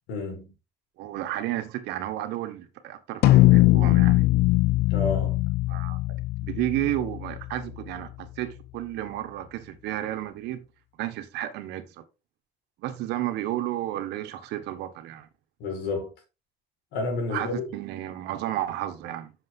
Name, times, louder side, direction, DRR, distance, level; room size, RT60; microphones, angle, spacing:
voice 1, 0.1-0.5 4.9-5.4 15.6-16.1 16.9-17.7, left 3 dB, 90° left, 5.0 m, -30 dB
voice 2, 1.0-4.3 5.7-6.0 6.4-10.6 11.0-12.0 12.8-15.3 17.3-19.3, right 13 dB, 90° right, 1.5 m, -32 dB
sound 1, 3.2-7.8, left 18 dB, 70° left, 0.4 m, -21 dB
7.9 x 6.4 x 3.8 m
cardioid pair, 110°, 17 cm